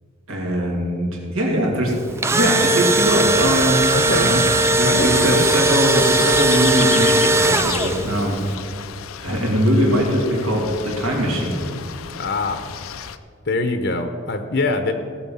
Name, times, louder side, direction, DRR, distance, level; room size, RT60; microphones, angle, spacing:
voice 1, 0.3-2.0 2.3-4.4 4.7-8.7 9.2-11.6, equal, 85° right, -1 dB, 2.5 m, -21 dB
Engine / Drill, 2.0-8.2, right 2 dB, 15° right, 0.4 m, -19 dB
Waves surf, 2.1-7.7, equal, 10° left, 0.8 m, -37 dB
sound 1, 3.0-13.2, left 8 dB, 85° left, 0.6 m, -33 dB
voice 2, 3.9-4.3 4.8-5.4 12.2-12.6 13.5-14.9, left 3 dB, 55° left, 7 dB, 0.8 m, -23 dB
17.0 x 6.8 x 5.6 m, 2.3 s
head